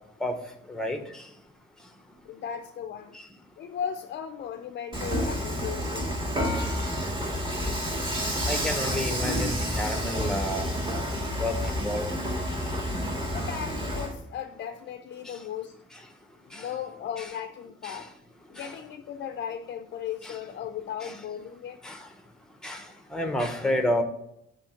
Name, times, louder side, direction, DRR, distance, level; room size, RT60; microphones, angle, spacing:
voice 1, 0.7-1.2 8.5-10.7 11.4-12.1 16.5-16.7 17.2-17.3 17.8-18.0 18.6-18.7 20.2-20.4 21.0-21.2 21.8-22.0 22.6-22.8 23.1-24.0, left 1 dB, 5° left, 5 dB, 0.8 m, -30 dB
voice 2, 2.2-3.2 3.6-6.1 13.3-15.8 16.4-18.1 18.5-21.8, left 8 dB, 55° left, 6 dB, 0.5 m, -36 dB
Dishes pots and pans / Frying (food), 4.9-14.1, equal, 20° right, 1.7 m, -29 dB
7.7 x 3.2 x 5.6 m, 0.78 s
cardioid pair, 145°, 21 cm